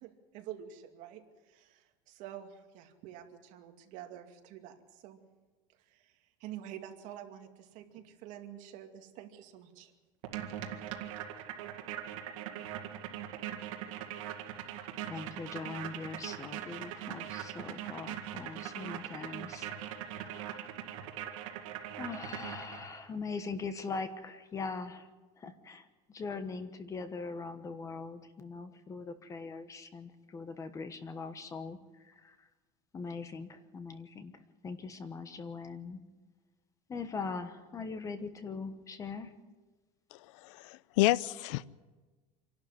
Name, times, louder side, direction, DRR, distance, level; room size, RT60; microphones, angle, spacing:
voice 1, 0.0-5.2 5.9-6.1 6.4-9.9, right 11 dB, 50° right, 4 dB, 2.4 m, -48 dB
sound 1, 10.2-23.0, right 10 dB, 85° right, 2.0 m, -41 dB
voice 2, 15.0-19.7 20.0-20.8 22.0-25.1 25.4-32.5 32.9-36.0 36.9-39.3, left 4 dB, 20° left, 11 dB, 1.3 m, -41 dB
voice 3, 40.1-41.7, left 16 dB, 70° left, 20 dB, 0.6 m, -30 dB
26.5 x 12.0 x 9.7 m, 1.3 s
cardioid pair, 160°, 17 cm